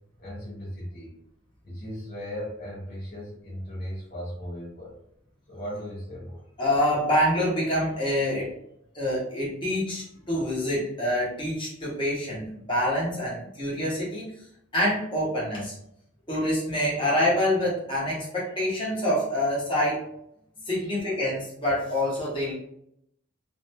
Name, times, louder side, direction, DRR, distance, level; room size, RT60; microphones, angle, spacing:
voice 1, 0.2-1.2 1.6-4.9 5.5-6.4 16.2-16.3 20.6-21.0, equal, 45° left, -7 dB, 0.7 m, -37 dB
voice 2, 6.6-8.5 8.9-14.4 14.7-15.7 16.3-20.0 20.7-22.5, left 1 dB, 25° left, -7 dB, 1.0 m, -26 dB
2.7 x 2.2 x 2.8 m, 0.74 s
head